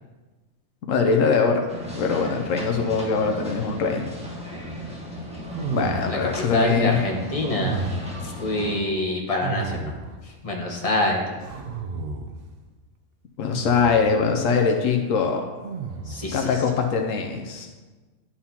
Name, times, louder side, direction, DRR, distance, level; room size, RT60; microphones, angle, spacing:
voice 1, 0.8-1.7 1.9-4.1 5.7-7.0 8.2-8.3 13.4-15.4 16.3-17.7, left 5 dB, 85° left, 3 dB, 1.1 m, -22 dB
sound 1, 1.7-8.8, equal, 5° right, 1.5 m, -36 dB
sound 2, 5.5-6.4 7.5-8.3 9.4-10.2 11.4-12.4 13.5-14.0 15.6-16.3, right 4 dB, 55° right, 0.7 m, -32 dB
voice 2, 6.5-7.8 8.4-9.9 10.4-11.2 16.1-16.5, left 2 dB, 30° left, -2 dB, 1.2 m, -25 dB
11.0 x 5.7 x 2.9 m, 1.3 s
omnidirectional pair, 1.3 m